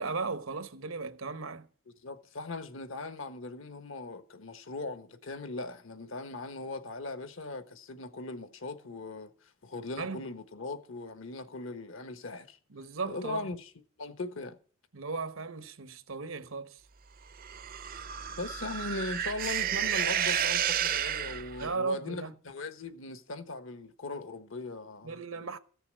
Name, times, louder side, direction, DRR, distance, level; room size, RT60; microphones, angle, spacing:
voice 1, 0.0-1.7 10.0-10.2 12.7-13.5 14.9-16.8 21.6-22.3 25.0-25.6, right 4 dB, 80° right, 1.0 m, -36 dB
voice 2, 2.0-12.6 13.1-13.7 14.0-14.6 18.4-25.6, left 3 dB, 70° left, 1.2 m, -39 dB
sound 1, 17.4-21.7, right 10 dB, 45° right, 0.5 m, -31 dB
15.0 x 6.9 x 7.5 m
head